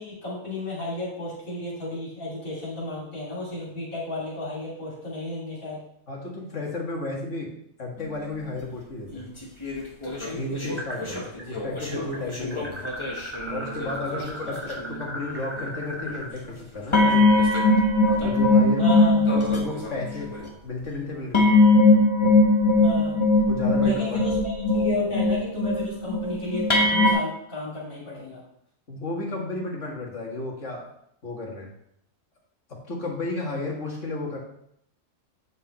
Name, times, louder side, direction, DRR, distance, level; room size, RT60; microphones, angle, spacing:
voice 1, 0.0-5.8 14.5-14.6 18.8-19.3 22.8-23.1 23.8-28.4, left 2 dB, 80° left, -6 dB, 3.1 m, -33 dB
voice 2, 6.1-7.5 7.8-9.3 10.3-12.8 13.5-17.5 18.2-18.8 19.3-20.3 20.6-21.6 22.2-22.3 23.5-24.2 28.9-30.9 31.2-31.7 32.7-34.4, left 2 dB, 60° left, -2 dB, 2.2 m, -33 dB
sound 1, 9.1-14.3 14.6-15.0 15.6-16.2 16.9-20.5 21.3-27.1, left 2 dB, 20° left, 1.2 m, -21 dB
sound 2, 10.8-11.4 11.7-16.3, equal, 10° right, 2.3 m, -36 dB
8.5 x 5.3 x 4.3 m, 0.72 s
omnidirectional pair, 1.4 m